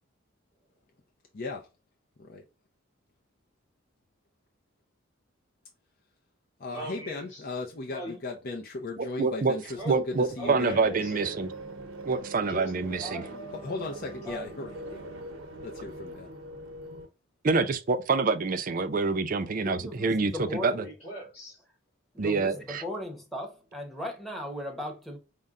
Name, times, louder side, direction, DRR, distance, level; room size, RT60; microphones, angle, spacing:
voice 1, 1.3-1.7 2.2-2.4 6.6-10.8 13.6-15.1 15.6-16.3, left 3 dB, 45° left, 0.6 m, -37 dB
voice 2, 6.7-7.4 7.9-8.2 9.8-10.1 10.4-11.4 12.5-13.5 13.9-14.5 20.8-21.6, right 1 dB, 30° left, 2.4 m, -40 dB
voice 3, 9.0-9.5 9.9-11.5 12.0-13.2 17.4-20.9 22.2-22.8, right 4 dB, 40° right, 0.5 m, -27 dB
sound 1, 9.7-17.1, right 1 dB, 90° right, 0.8 m, -43 dB
voice 4, 19.6-20.9 22.1-25.2, left 1 dB, ahead, 0.9 m, -37 dB
5.3 x 2.2 x 3.6 m
head